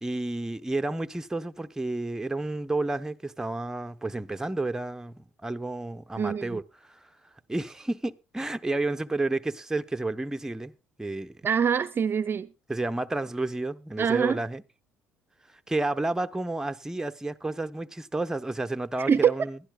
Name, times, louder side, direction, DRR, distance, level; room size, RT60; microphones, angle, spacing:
voice 1, 0.0-6.6 6.9-7.0 7.5-10.7 11.0-11.4 12.7-14.6 15.5-19.6, right 2 dB, 10° right, 0.8 m, -31 dB
voice 2, 6.2-6.6 11.4-12.5 14.0-14.4 19.0-19.3, right 7 dB, 35° right, 0.6 m, -24 dB
21.5 x 11.5 x 2.3 m
hypercardioid pair, 60°, 6 cm